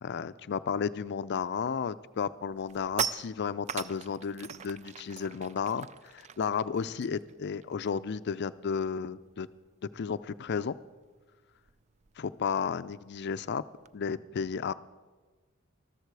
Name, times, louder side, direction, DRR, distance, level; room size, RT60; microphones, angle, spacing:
voice 1, 0.0-9.5 9.9-10.8 12.2-13.6 13.9-14.7, left 6 dB, 55° left, 14 dB, 0.4 m, -33 dB
sound 1, 1.6-1.8 2.2-8.2 8.4-8.7 9.0-14.0, right 8 dB, 30° right, 0.3 m, -41 dB
13.5 x 13.5 x 4.7 m, 1.4 s
head